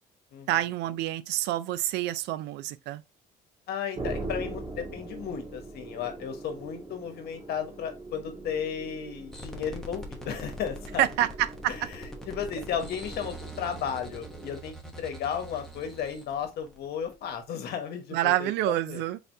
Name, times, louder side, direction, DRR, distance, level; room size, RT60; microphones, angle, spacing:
voice 1, 0.5-3.0 11.0-11.7 18.1-19.2, right 14 dB, 85° right, 0.4 m, -27 dB
voice 2, 3.7-11.1 11.7-19.0, left 8 dB, 70° left, 1.2 m, -34 dB
drone elevator shaft, 3.9-14.6, right 2 dB, 30° right, 1.9 m, -42 dB
sound 1, 9.3-17.4, equal, ahead, 1.0 m, -43 dB
3.9 x 3.4 x 2.7 m
cardioid pair, 110°, 17 cm